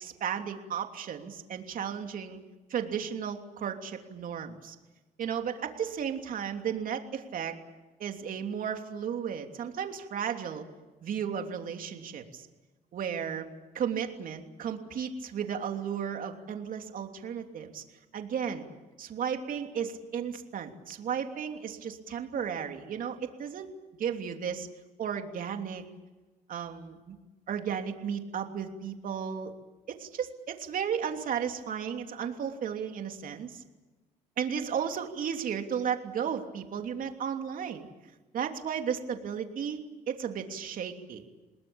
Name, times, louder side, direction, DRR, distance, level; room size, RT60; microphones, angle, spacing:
voice 1, 0.0-2.4 2.7-4.7 5.2-7.5 8.0-10.6 11.0-12.5 12.9-13.5 13.7-17.8 18.1-18.7 19.0-23.7 24.0-24.7 25.0-25.8 26.5-27.2 27.5-29.5 29.9-33.6 34.4-37.9 38.3-41.2, right 7 dB, 55° right, 5 dB, 3.1 m, -34 dB
28.0 x 20.0 x 8.8 m, 1.2 s
cardioid pair, 110°, 17 cm